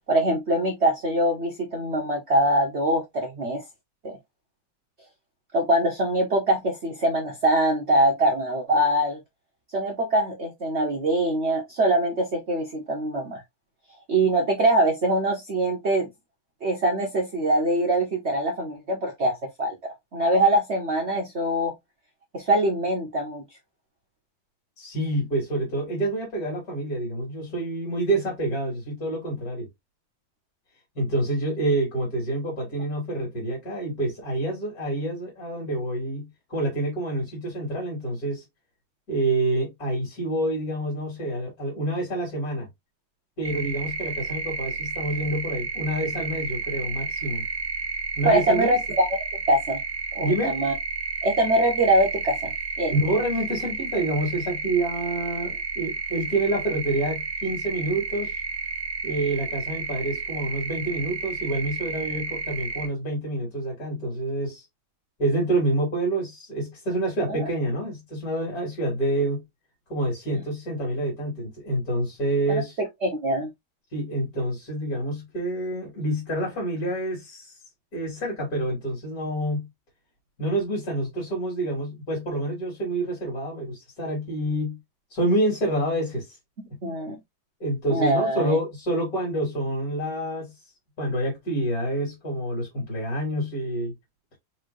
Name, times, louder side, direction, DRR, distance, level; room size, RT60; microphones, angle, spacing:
voice 1, 0.1-3.6 4.0-4.2 5.5-9.2 9.7-13.4 14.1-16.1 16.6-19.7 20.1-21.7 22.3-23.4 48.2-49.2 49.5-49.8 50.1-50.7 51.2-52.5 52.8-52.9 67.3-67.5 72.5-72.6 73.0-73.5 86.8-87.2 87.9-88.6, right 1 dB, 50° right, 0.8 m, -23 dB
voice 2, 24.8-29.7 31.0-38.4 39.1-42.7 43.4-47.4 48.2-48.8 50.2-50.6 52.9-58.3 59.0-64.7 65.2-69.4 69.9-72.8 73.9-77.5 77.9-79.7 80.4-84.8 85.1-86.3 87.6-90.5 91.0-93.9, right 1 dB, 45° left, 2.8 m, -27 dB
sound 1, 43.4-62.9, right 4 dB, 30° right, 1.2 m, -31 dB
4.4 x 3.3 x 2.6 m
omnidirectional pair, 2.2 m